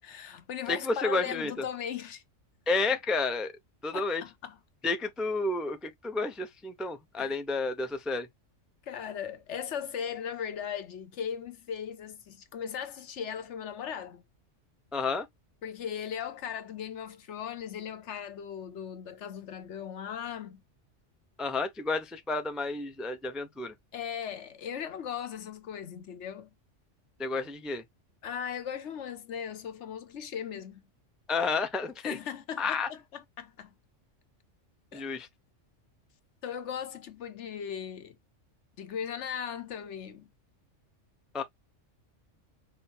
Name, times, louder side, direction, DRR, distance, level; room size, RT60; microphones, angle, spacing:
voice 1, 0.0-2.2 3.9-4.6 7.2-7.4 8.9-14.2 15.6-20.6 23.9-26.5 28.2-30.8 32.0-33.7 34.9-35.0 36.4-38.2 38.8-40.3, left 8 dB, 70° left, 1.1 m, -38 dB
voice 2, 0.7-1.5 2.7-3.5 3.8-4.2 4.8-8.3 14.9-15.3 21.4-23.7 27.2-27.8 31.3-32.2 32.6-32.9 34.9-35.3 41.3-41.4, left 3 dB, ahead, 0.3 m, -31 dB
5.5 x 2.2 x 4.3 m
omnidirectional pair, 1.3 m